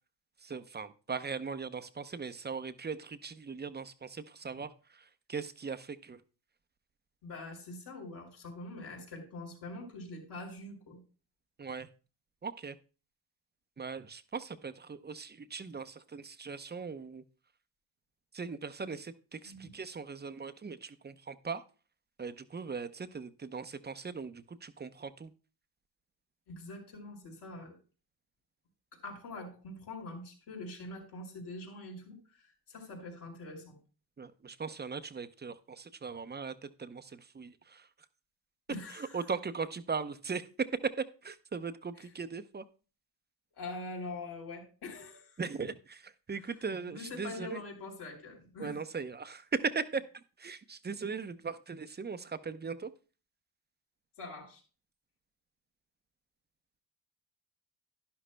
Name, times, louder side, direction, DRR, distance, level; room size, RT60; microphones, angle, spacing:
voice 1, 0.4-6.2 11.6-11.9 12.4-12.8 13.8-17.2 18.3-21.6 22.2-25.3 34.2-37.9 38.9-42.6 45.4-47.6 48.6-52.9, right 5 dB, 25° right, 11 dB, 0.7 m, -39 dB
voice 2, 7.2-11.0 19.4-19.7 26.5-27.8 28.9-33.8 38.7-39.2 42.0-42.1 43.6-45.4 46.4-46.6 46.9-48.8 54.2-54.6, left 2 dB, 70° left, -1 dB, 4.5 m, -44 dB
11.5 x 11.0 x 2.2 m, 0.36 s
cardioid pair, 85°, 42 cm